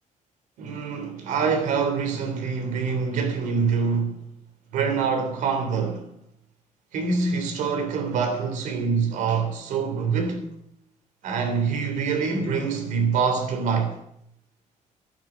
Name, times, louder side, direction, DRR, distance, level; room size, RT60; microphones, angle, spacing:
voice 1, 0.6-4.2 4.7-6.1 6.9-10.5 11.2-14.0, right 5 dB, 90° right, 3.3 m, -25 dB
12.5 x 9.1 x 8.6 m
cardioid pair, 165°, 13 cm